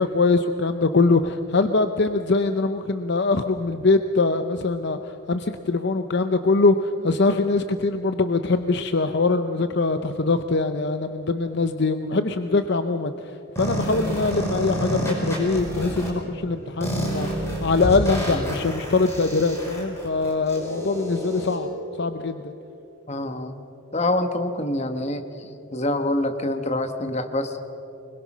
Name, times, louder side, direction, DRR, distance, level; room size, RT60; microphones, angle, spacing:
voice 1, 0.0-13.3 13.6-21.7 22.0-22.5, left 3 dB, 55° left, 9 dB, 0.7 m, -23 dB
sound 1, 13.6-16.1 16.8-21.6, equal, 15° left, 5.1 m, -29 dB
voice 2, 23.1-23.5 23.9-25.2 25.7-27.6, left 1 dB, 30° left, 7 dB, 1.3 m, -25 dB
25.0 x 21.5 x 6.1 m, 2.8 s
head